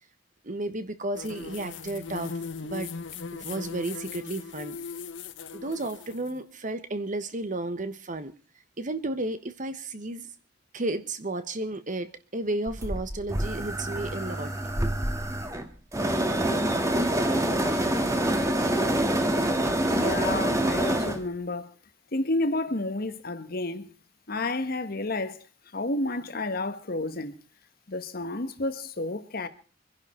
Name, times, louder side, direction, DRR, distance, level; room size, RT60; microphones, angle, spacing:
voice 1, 0.4-2.3 2.6-2.9 3.3-4.8 5.5-8.3 8.8-10.3 10.7-14.5, right 2 dB, 45° right, 1.2 m, -33 dB
sound 1, 1.1-6.3, left 5 dB, 80° left, 0.9 m, -38 dB
sound 2, 12.7-21.2, right 1 dB, 15° right, 1.6 m, -26 dB
voice 2, 19.9-21.7 22.1-23.9 24.3-25.5 25.7-27.4 27.9-29.5, left 2 dB, 55° left, 1.4 m, -30 dB
25.0 x 11.0 x 4.4 m
head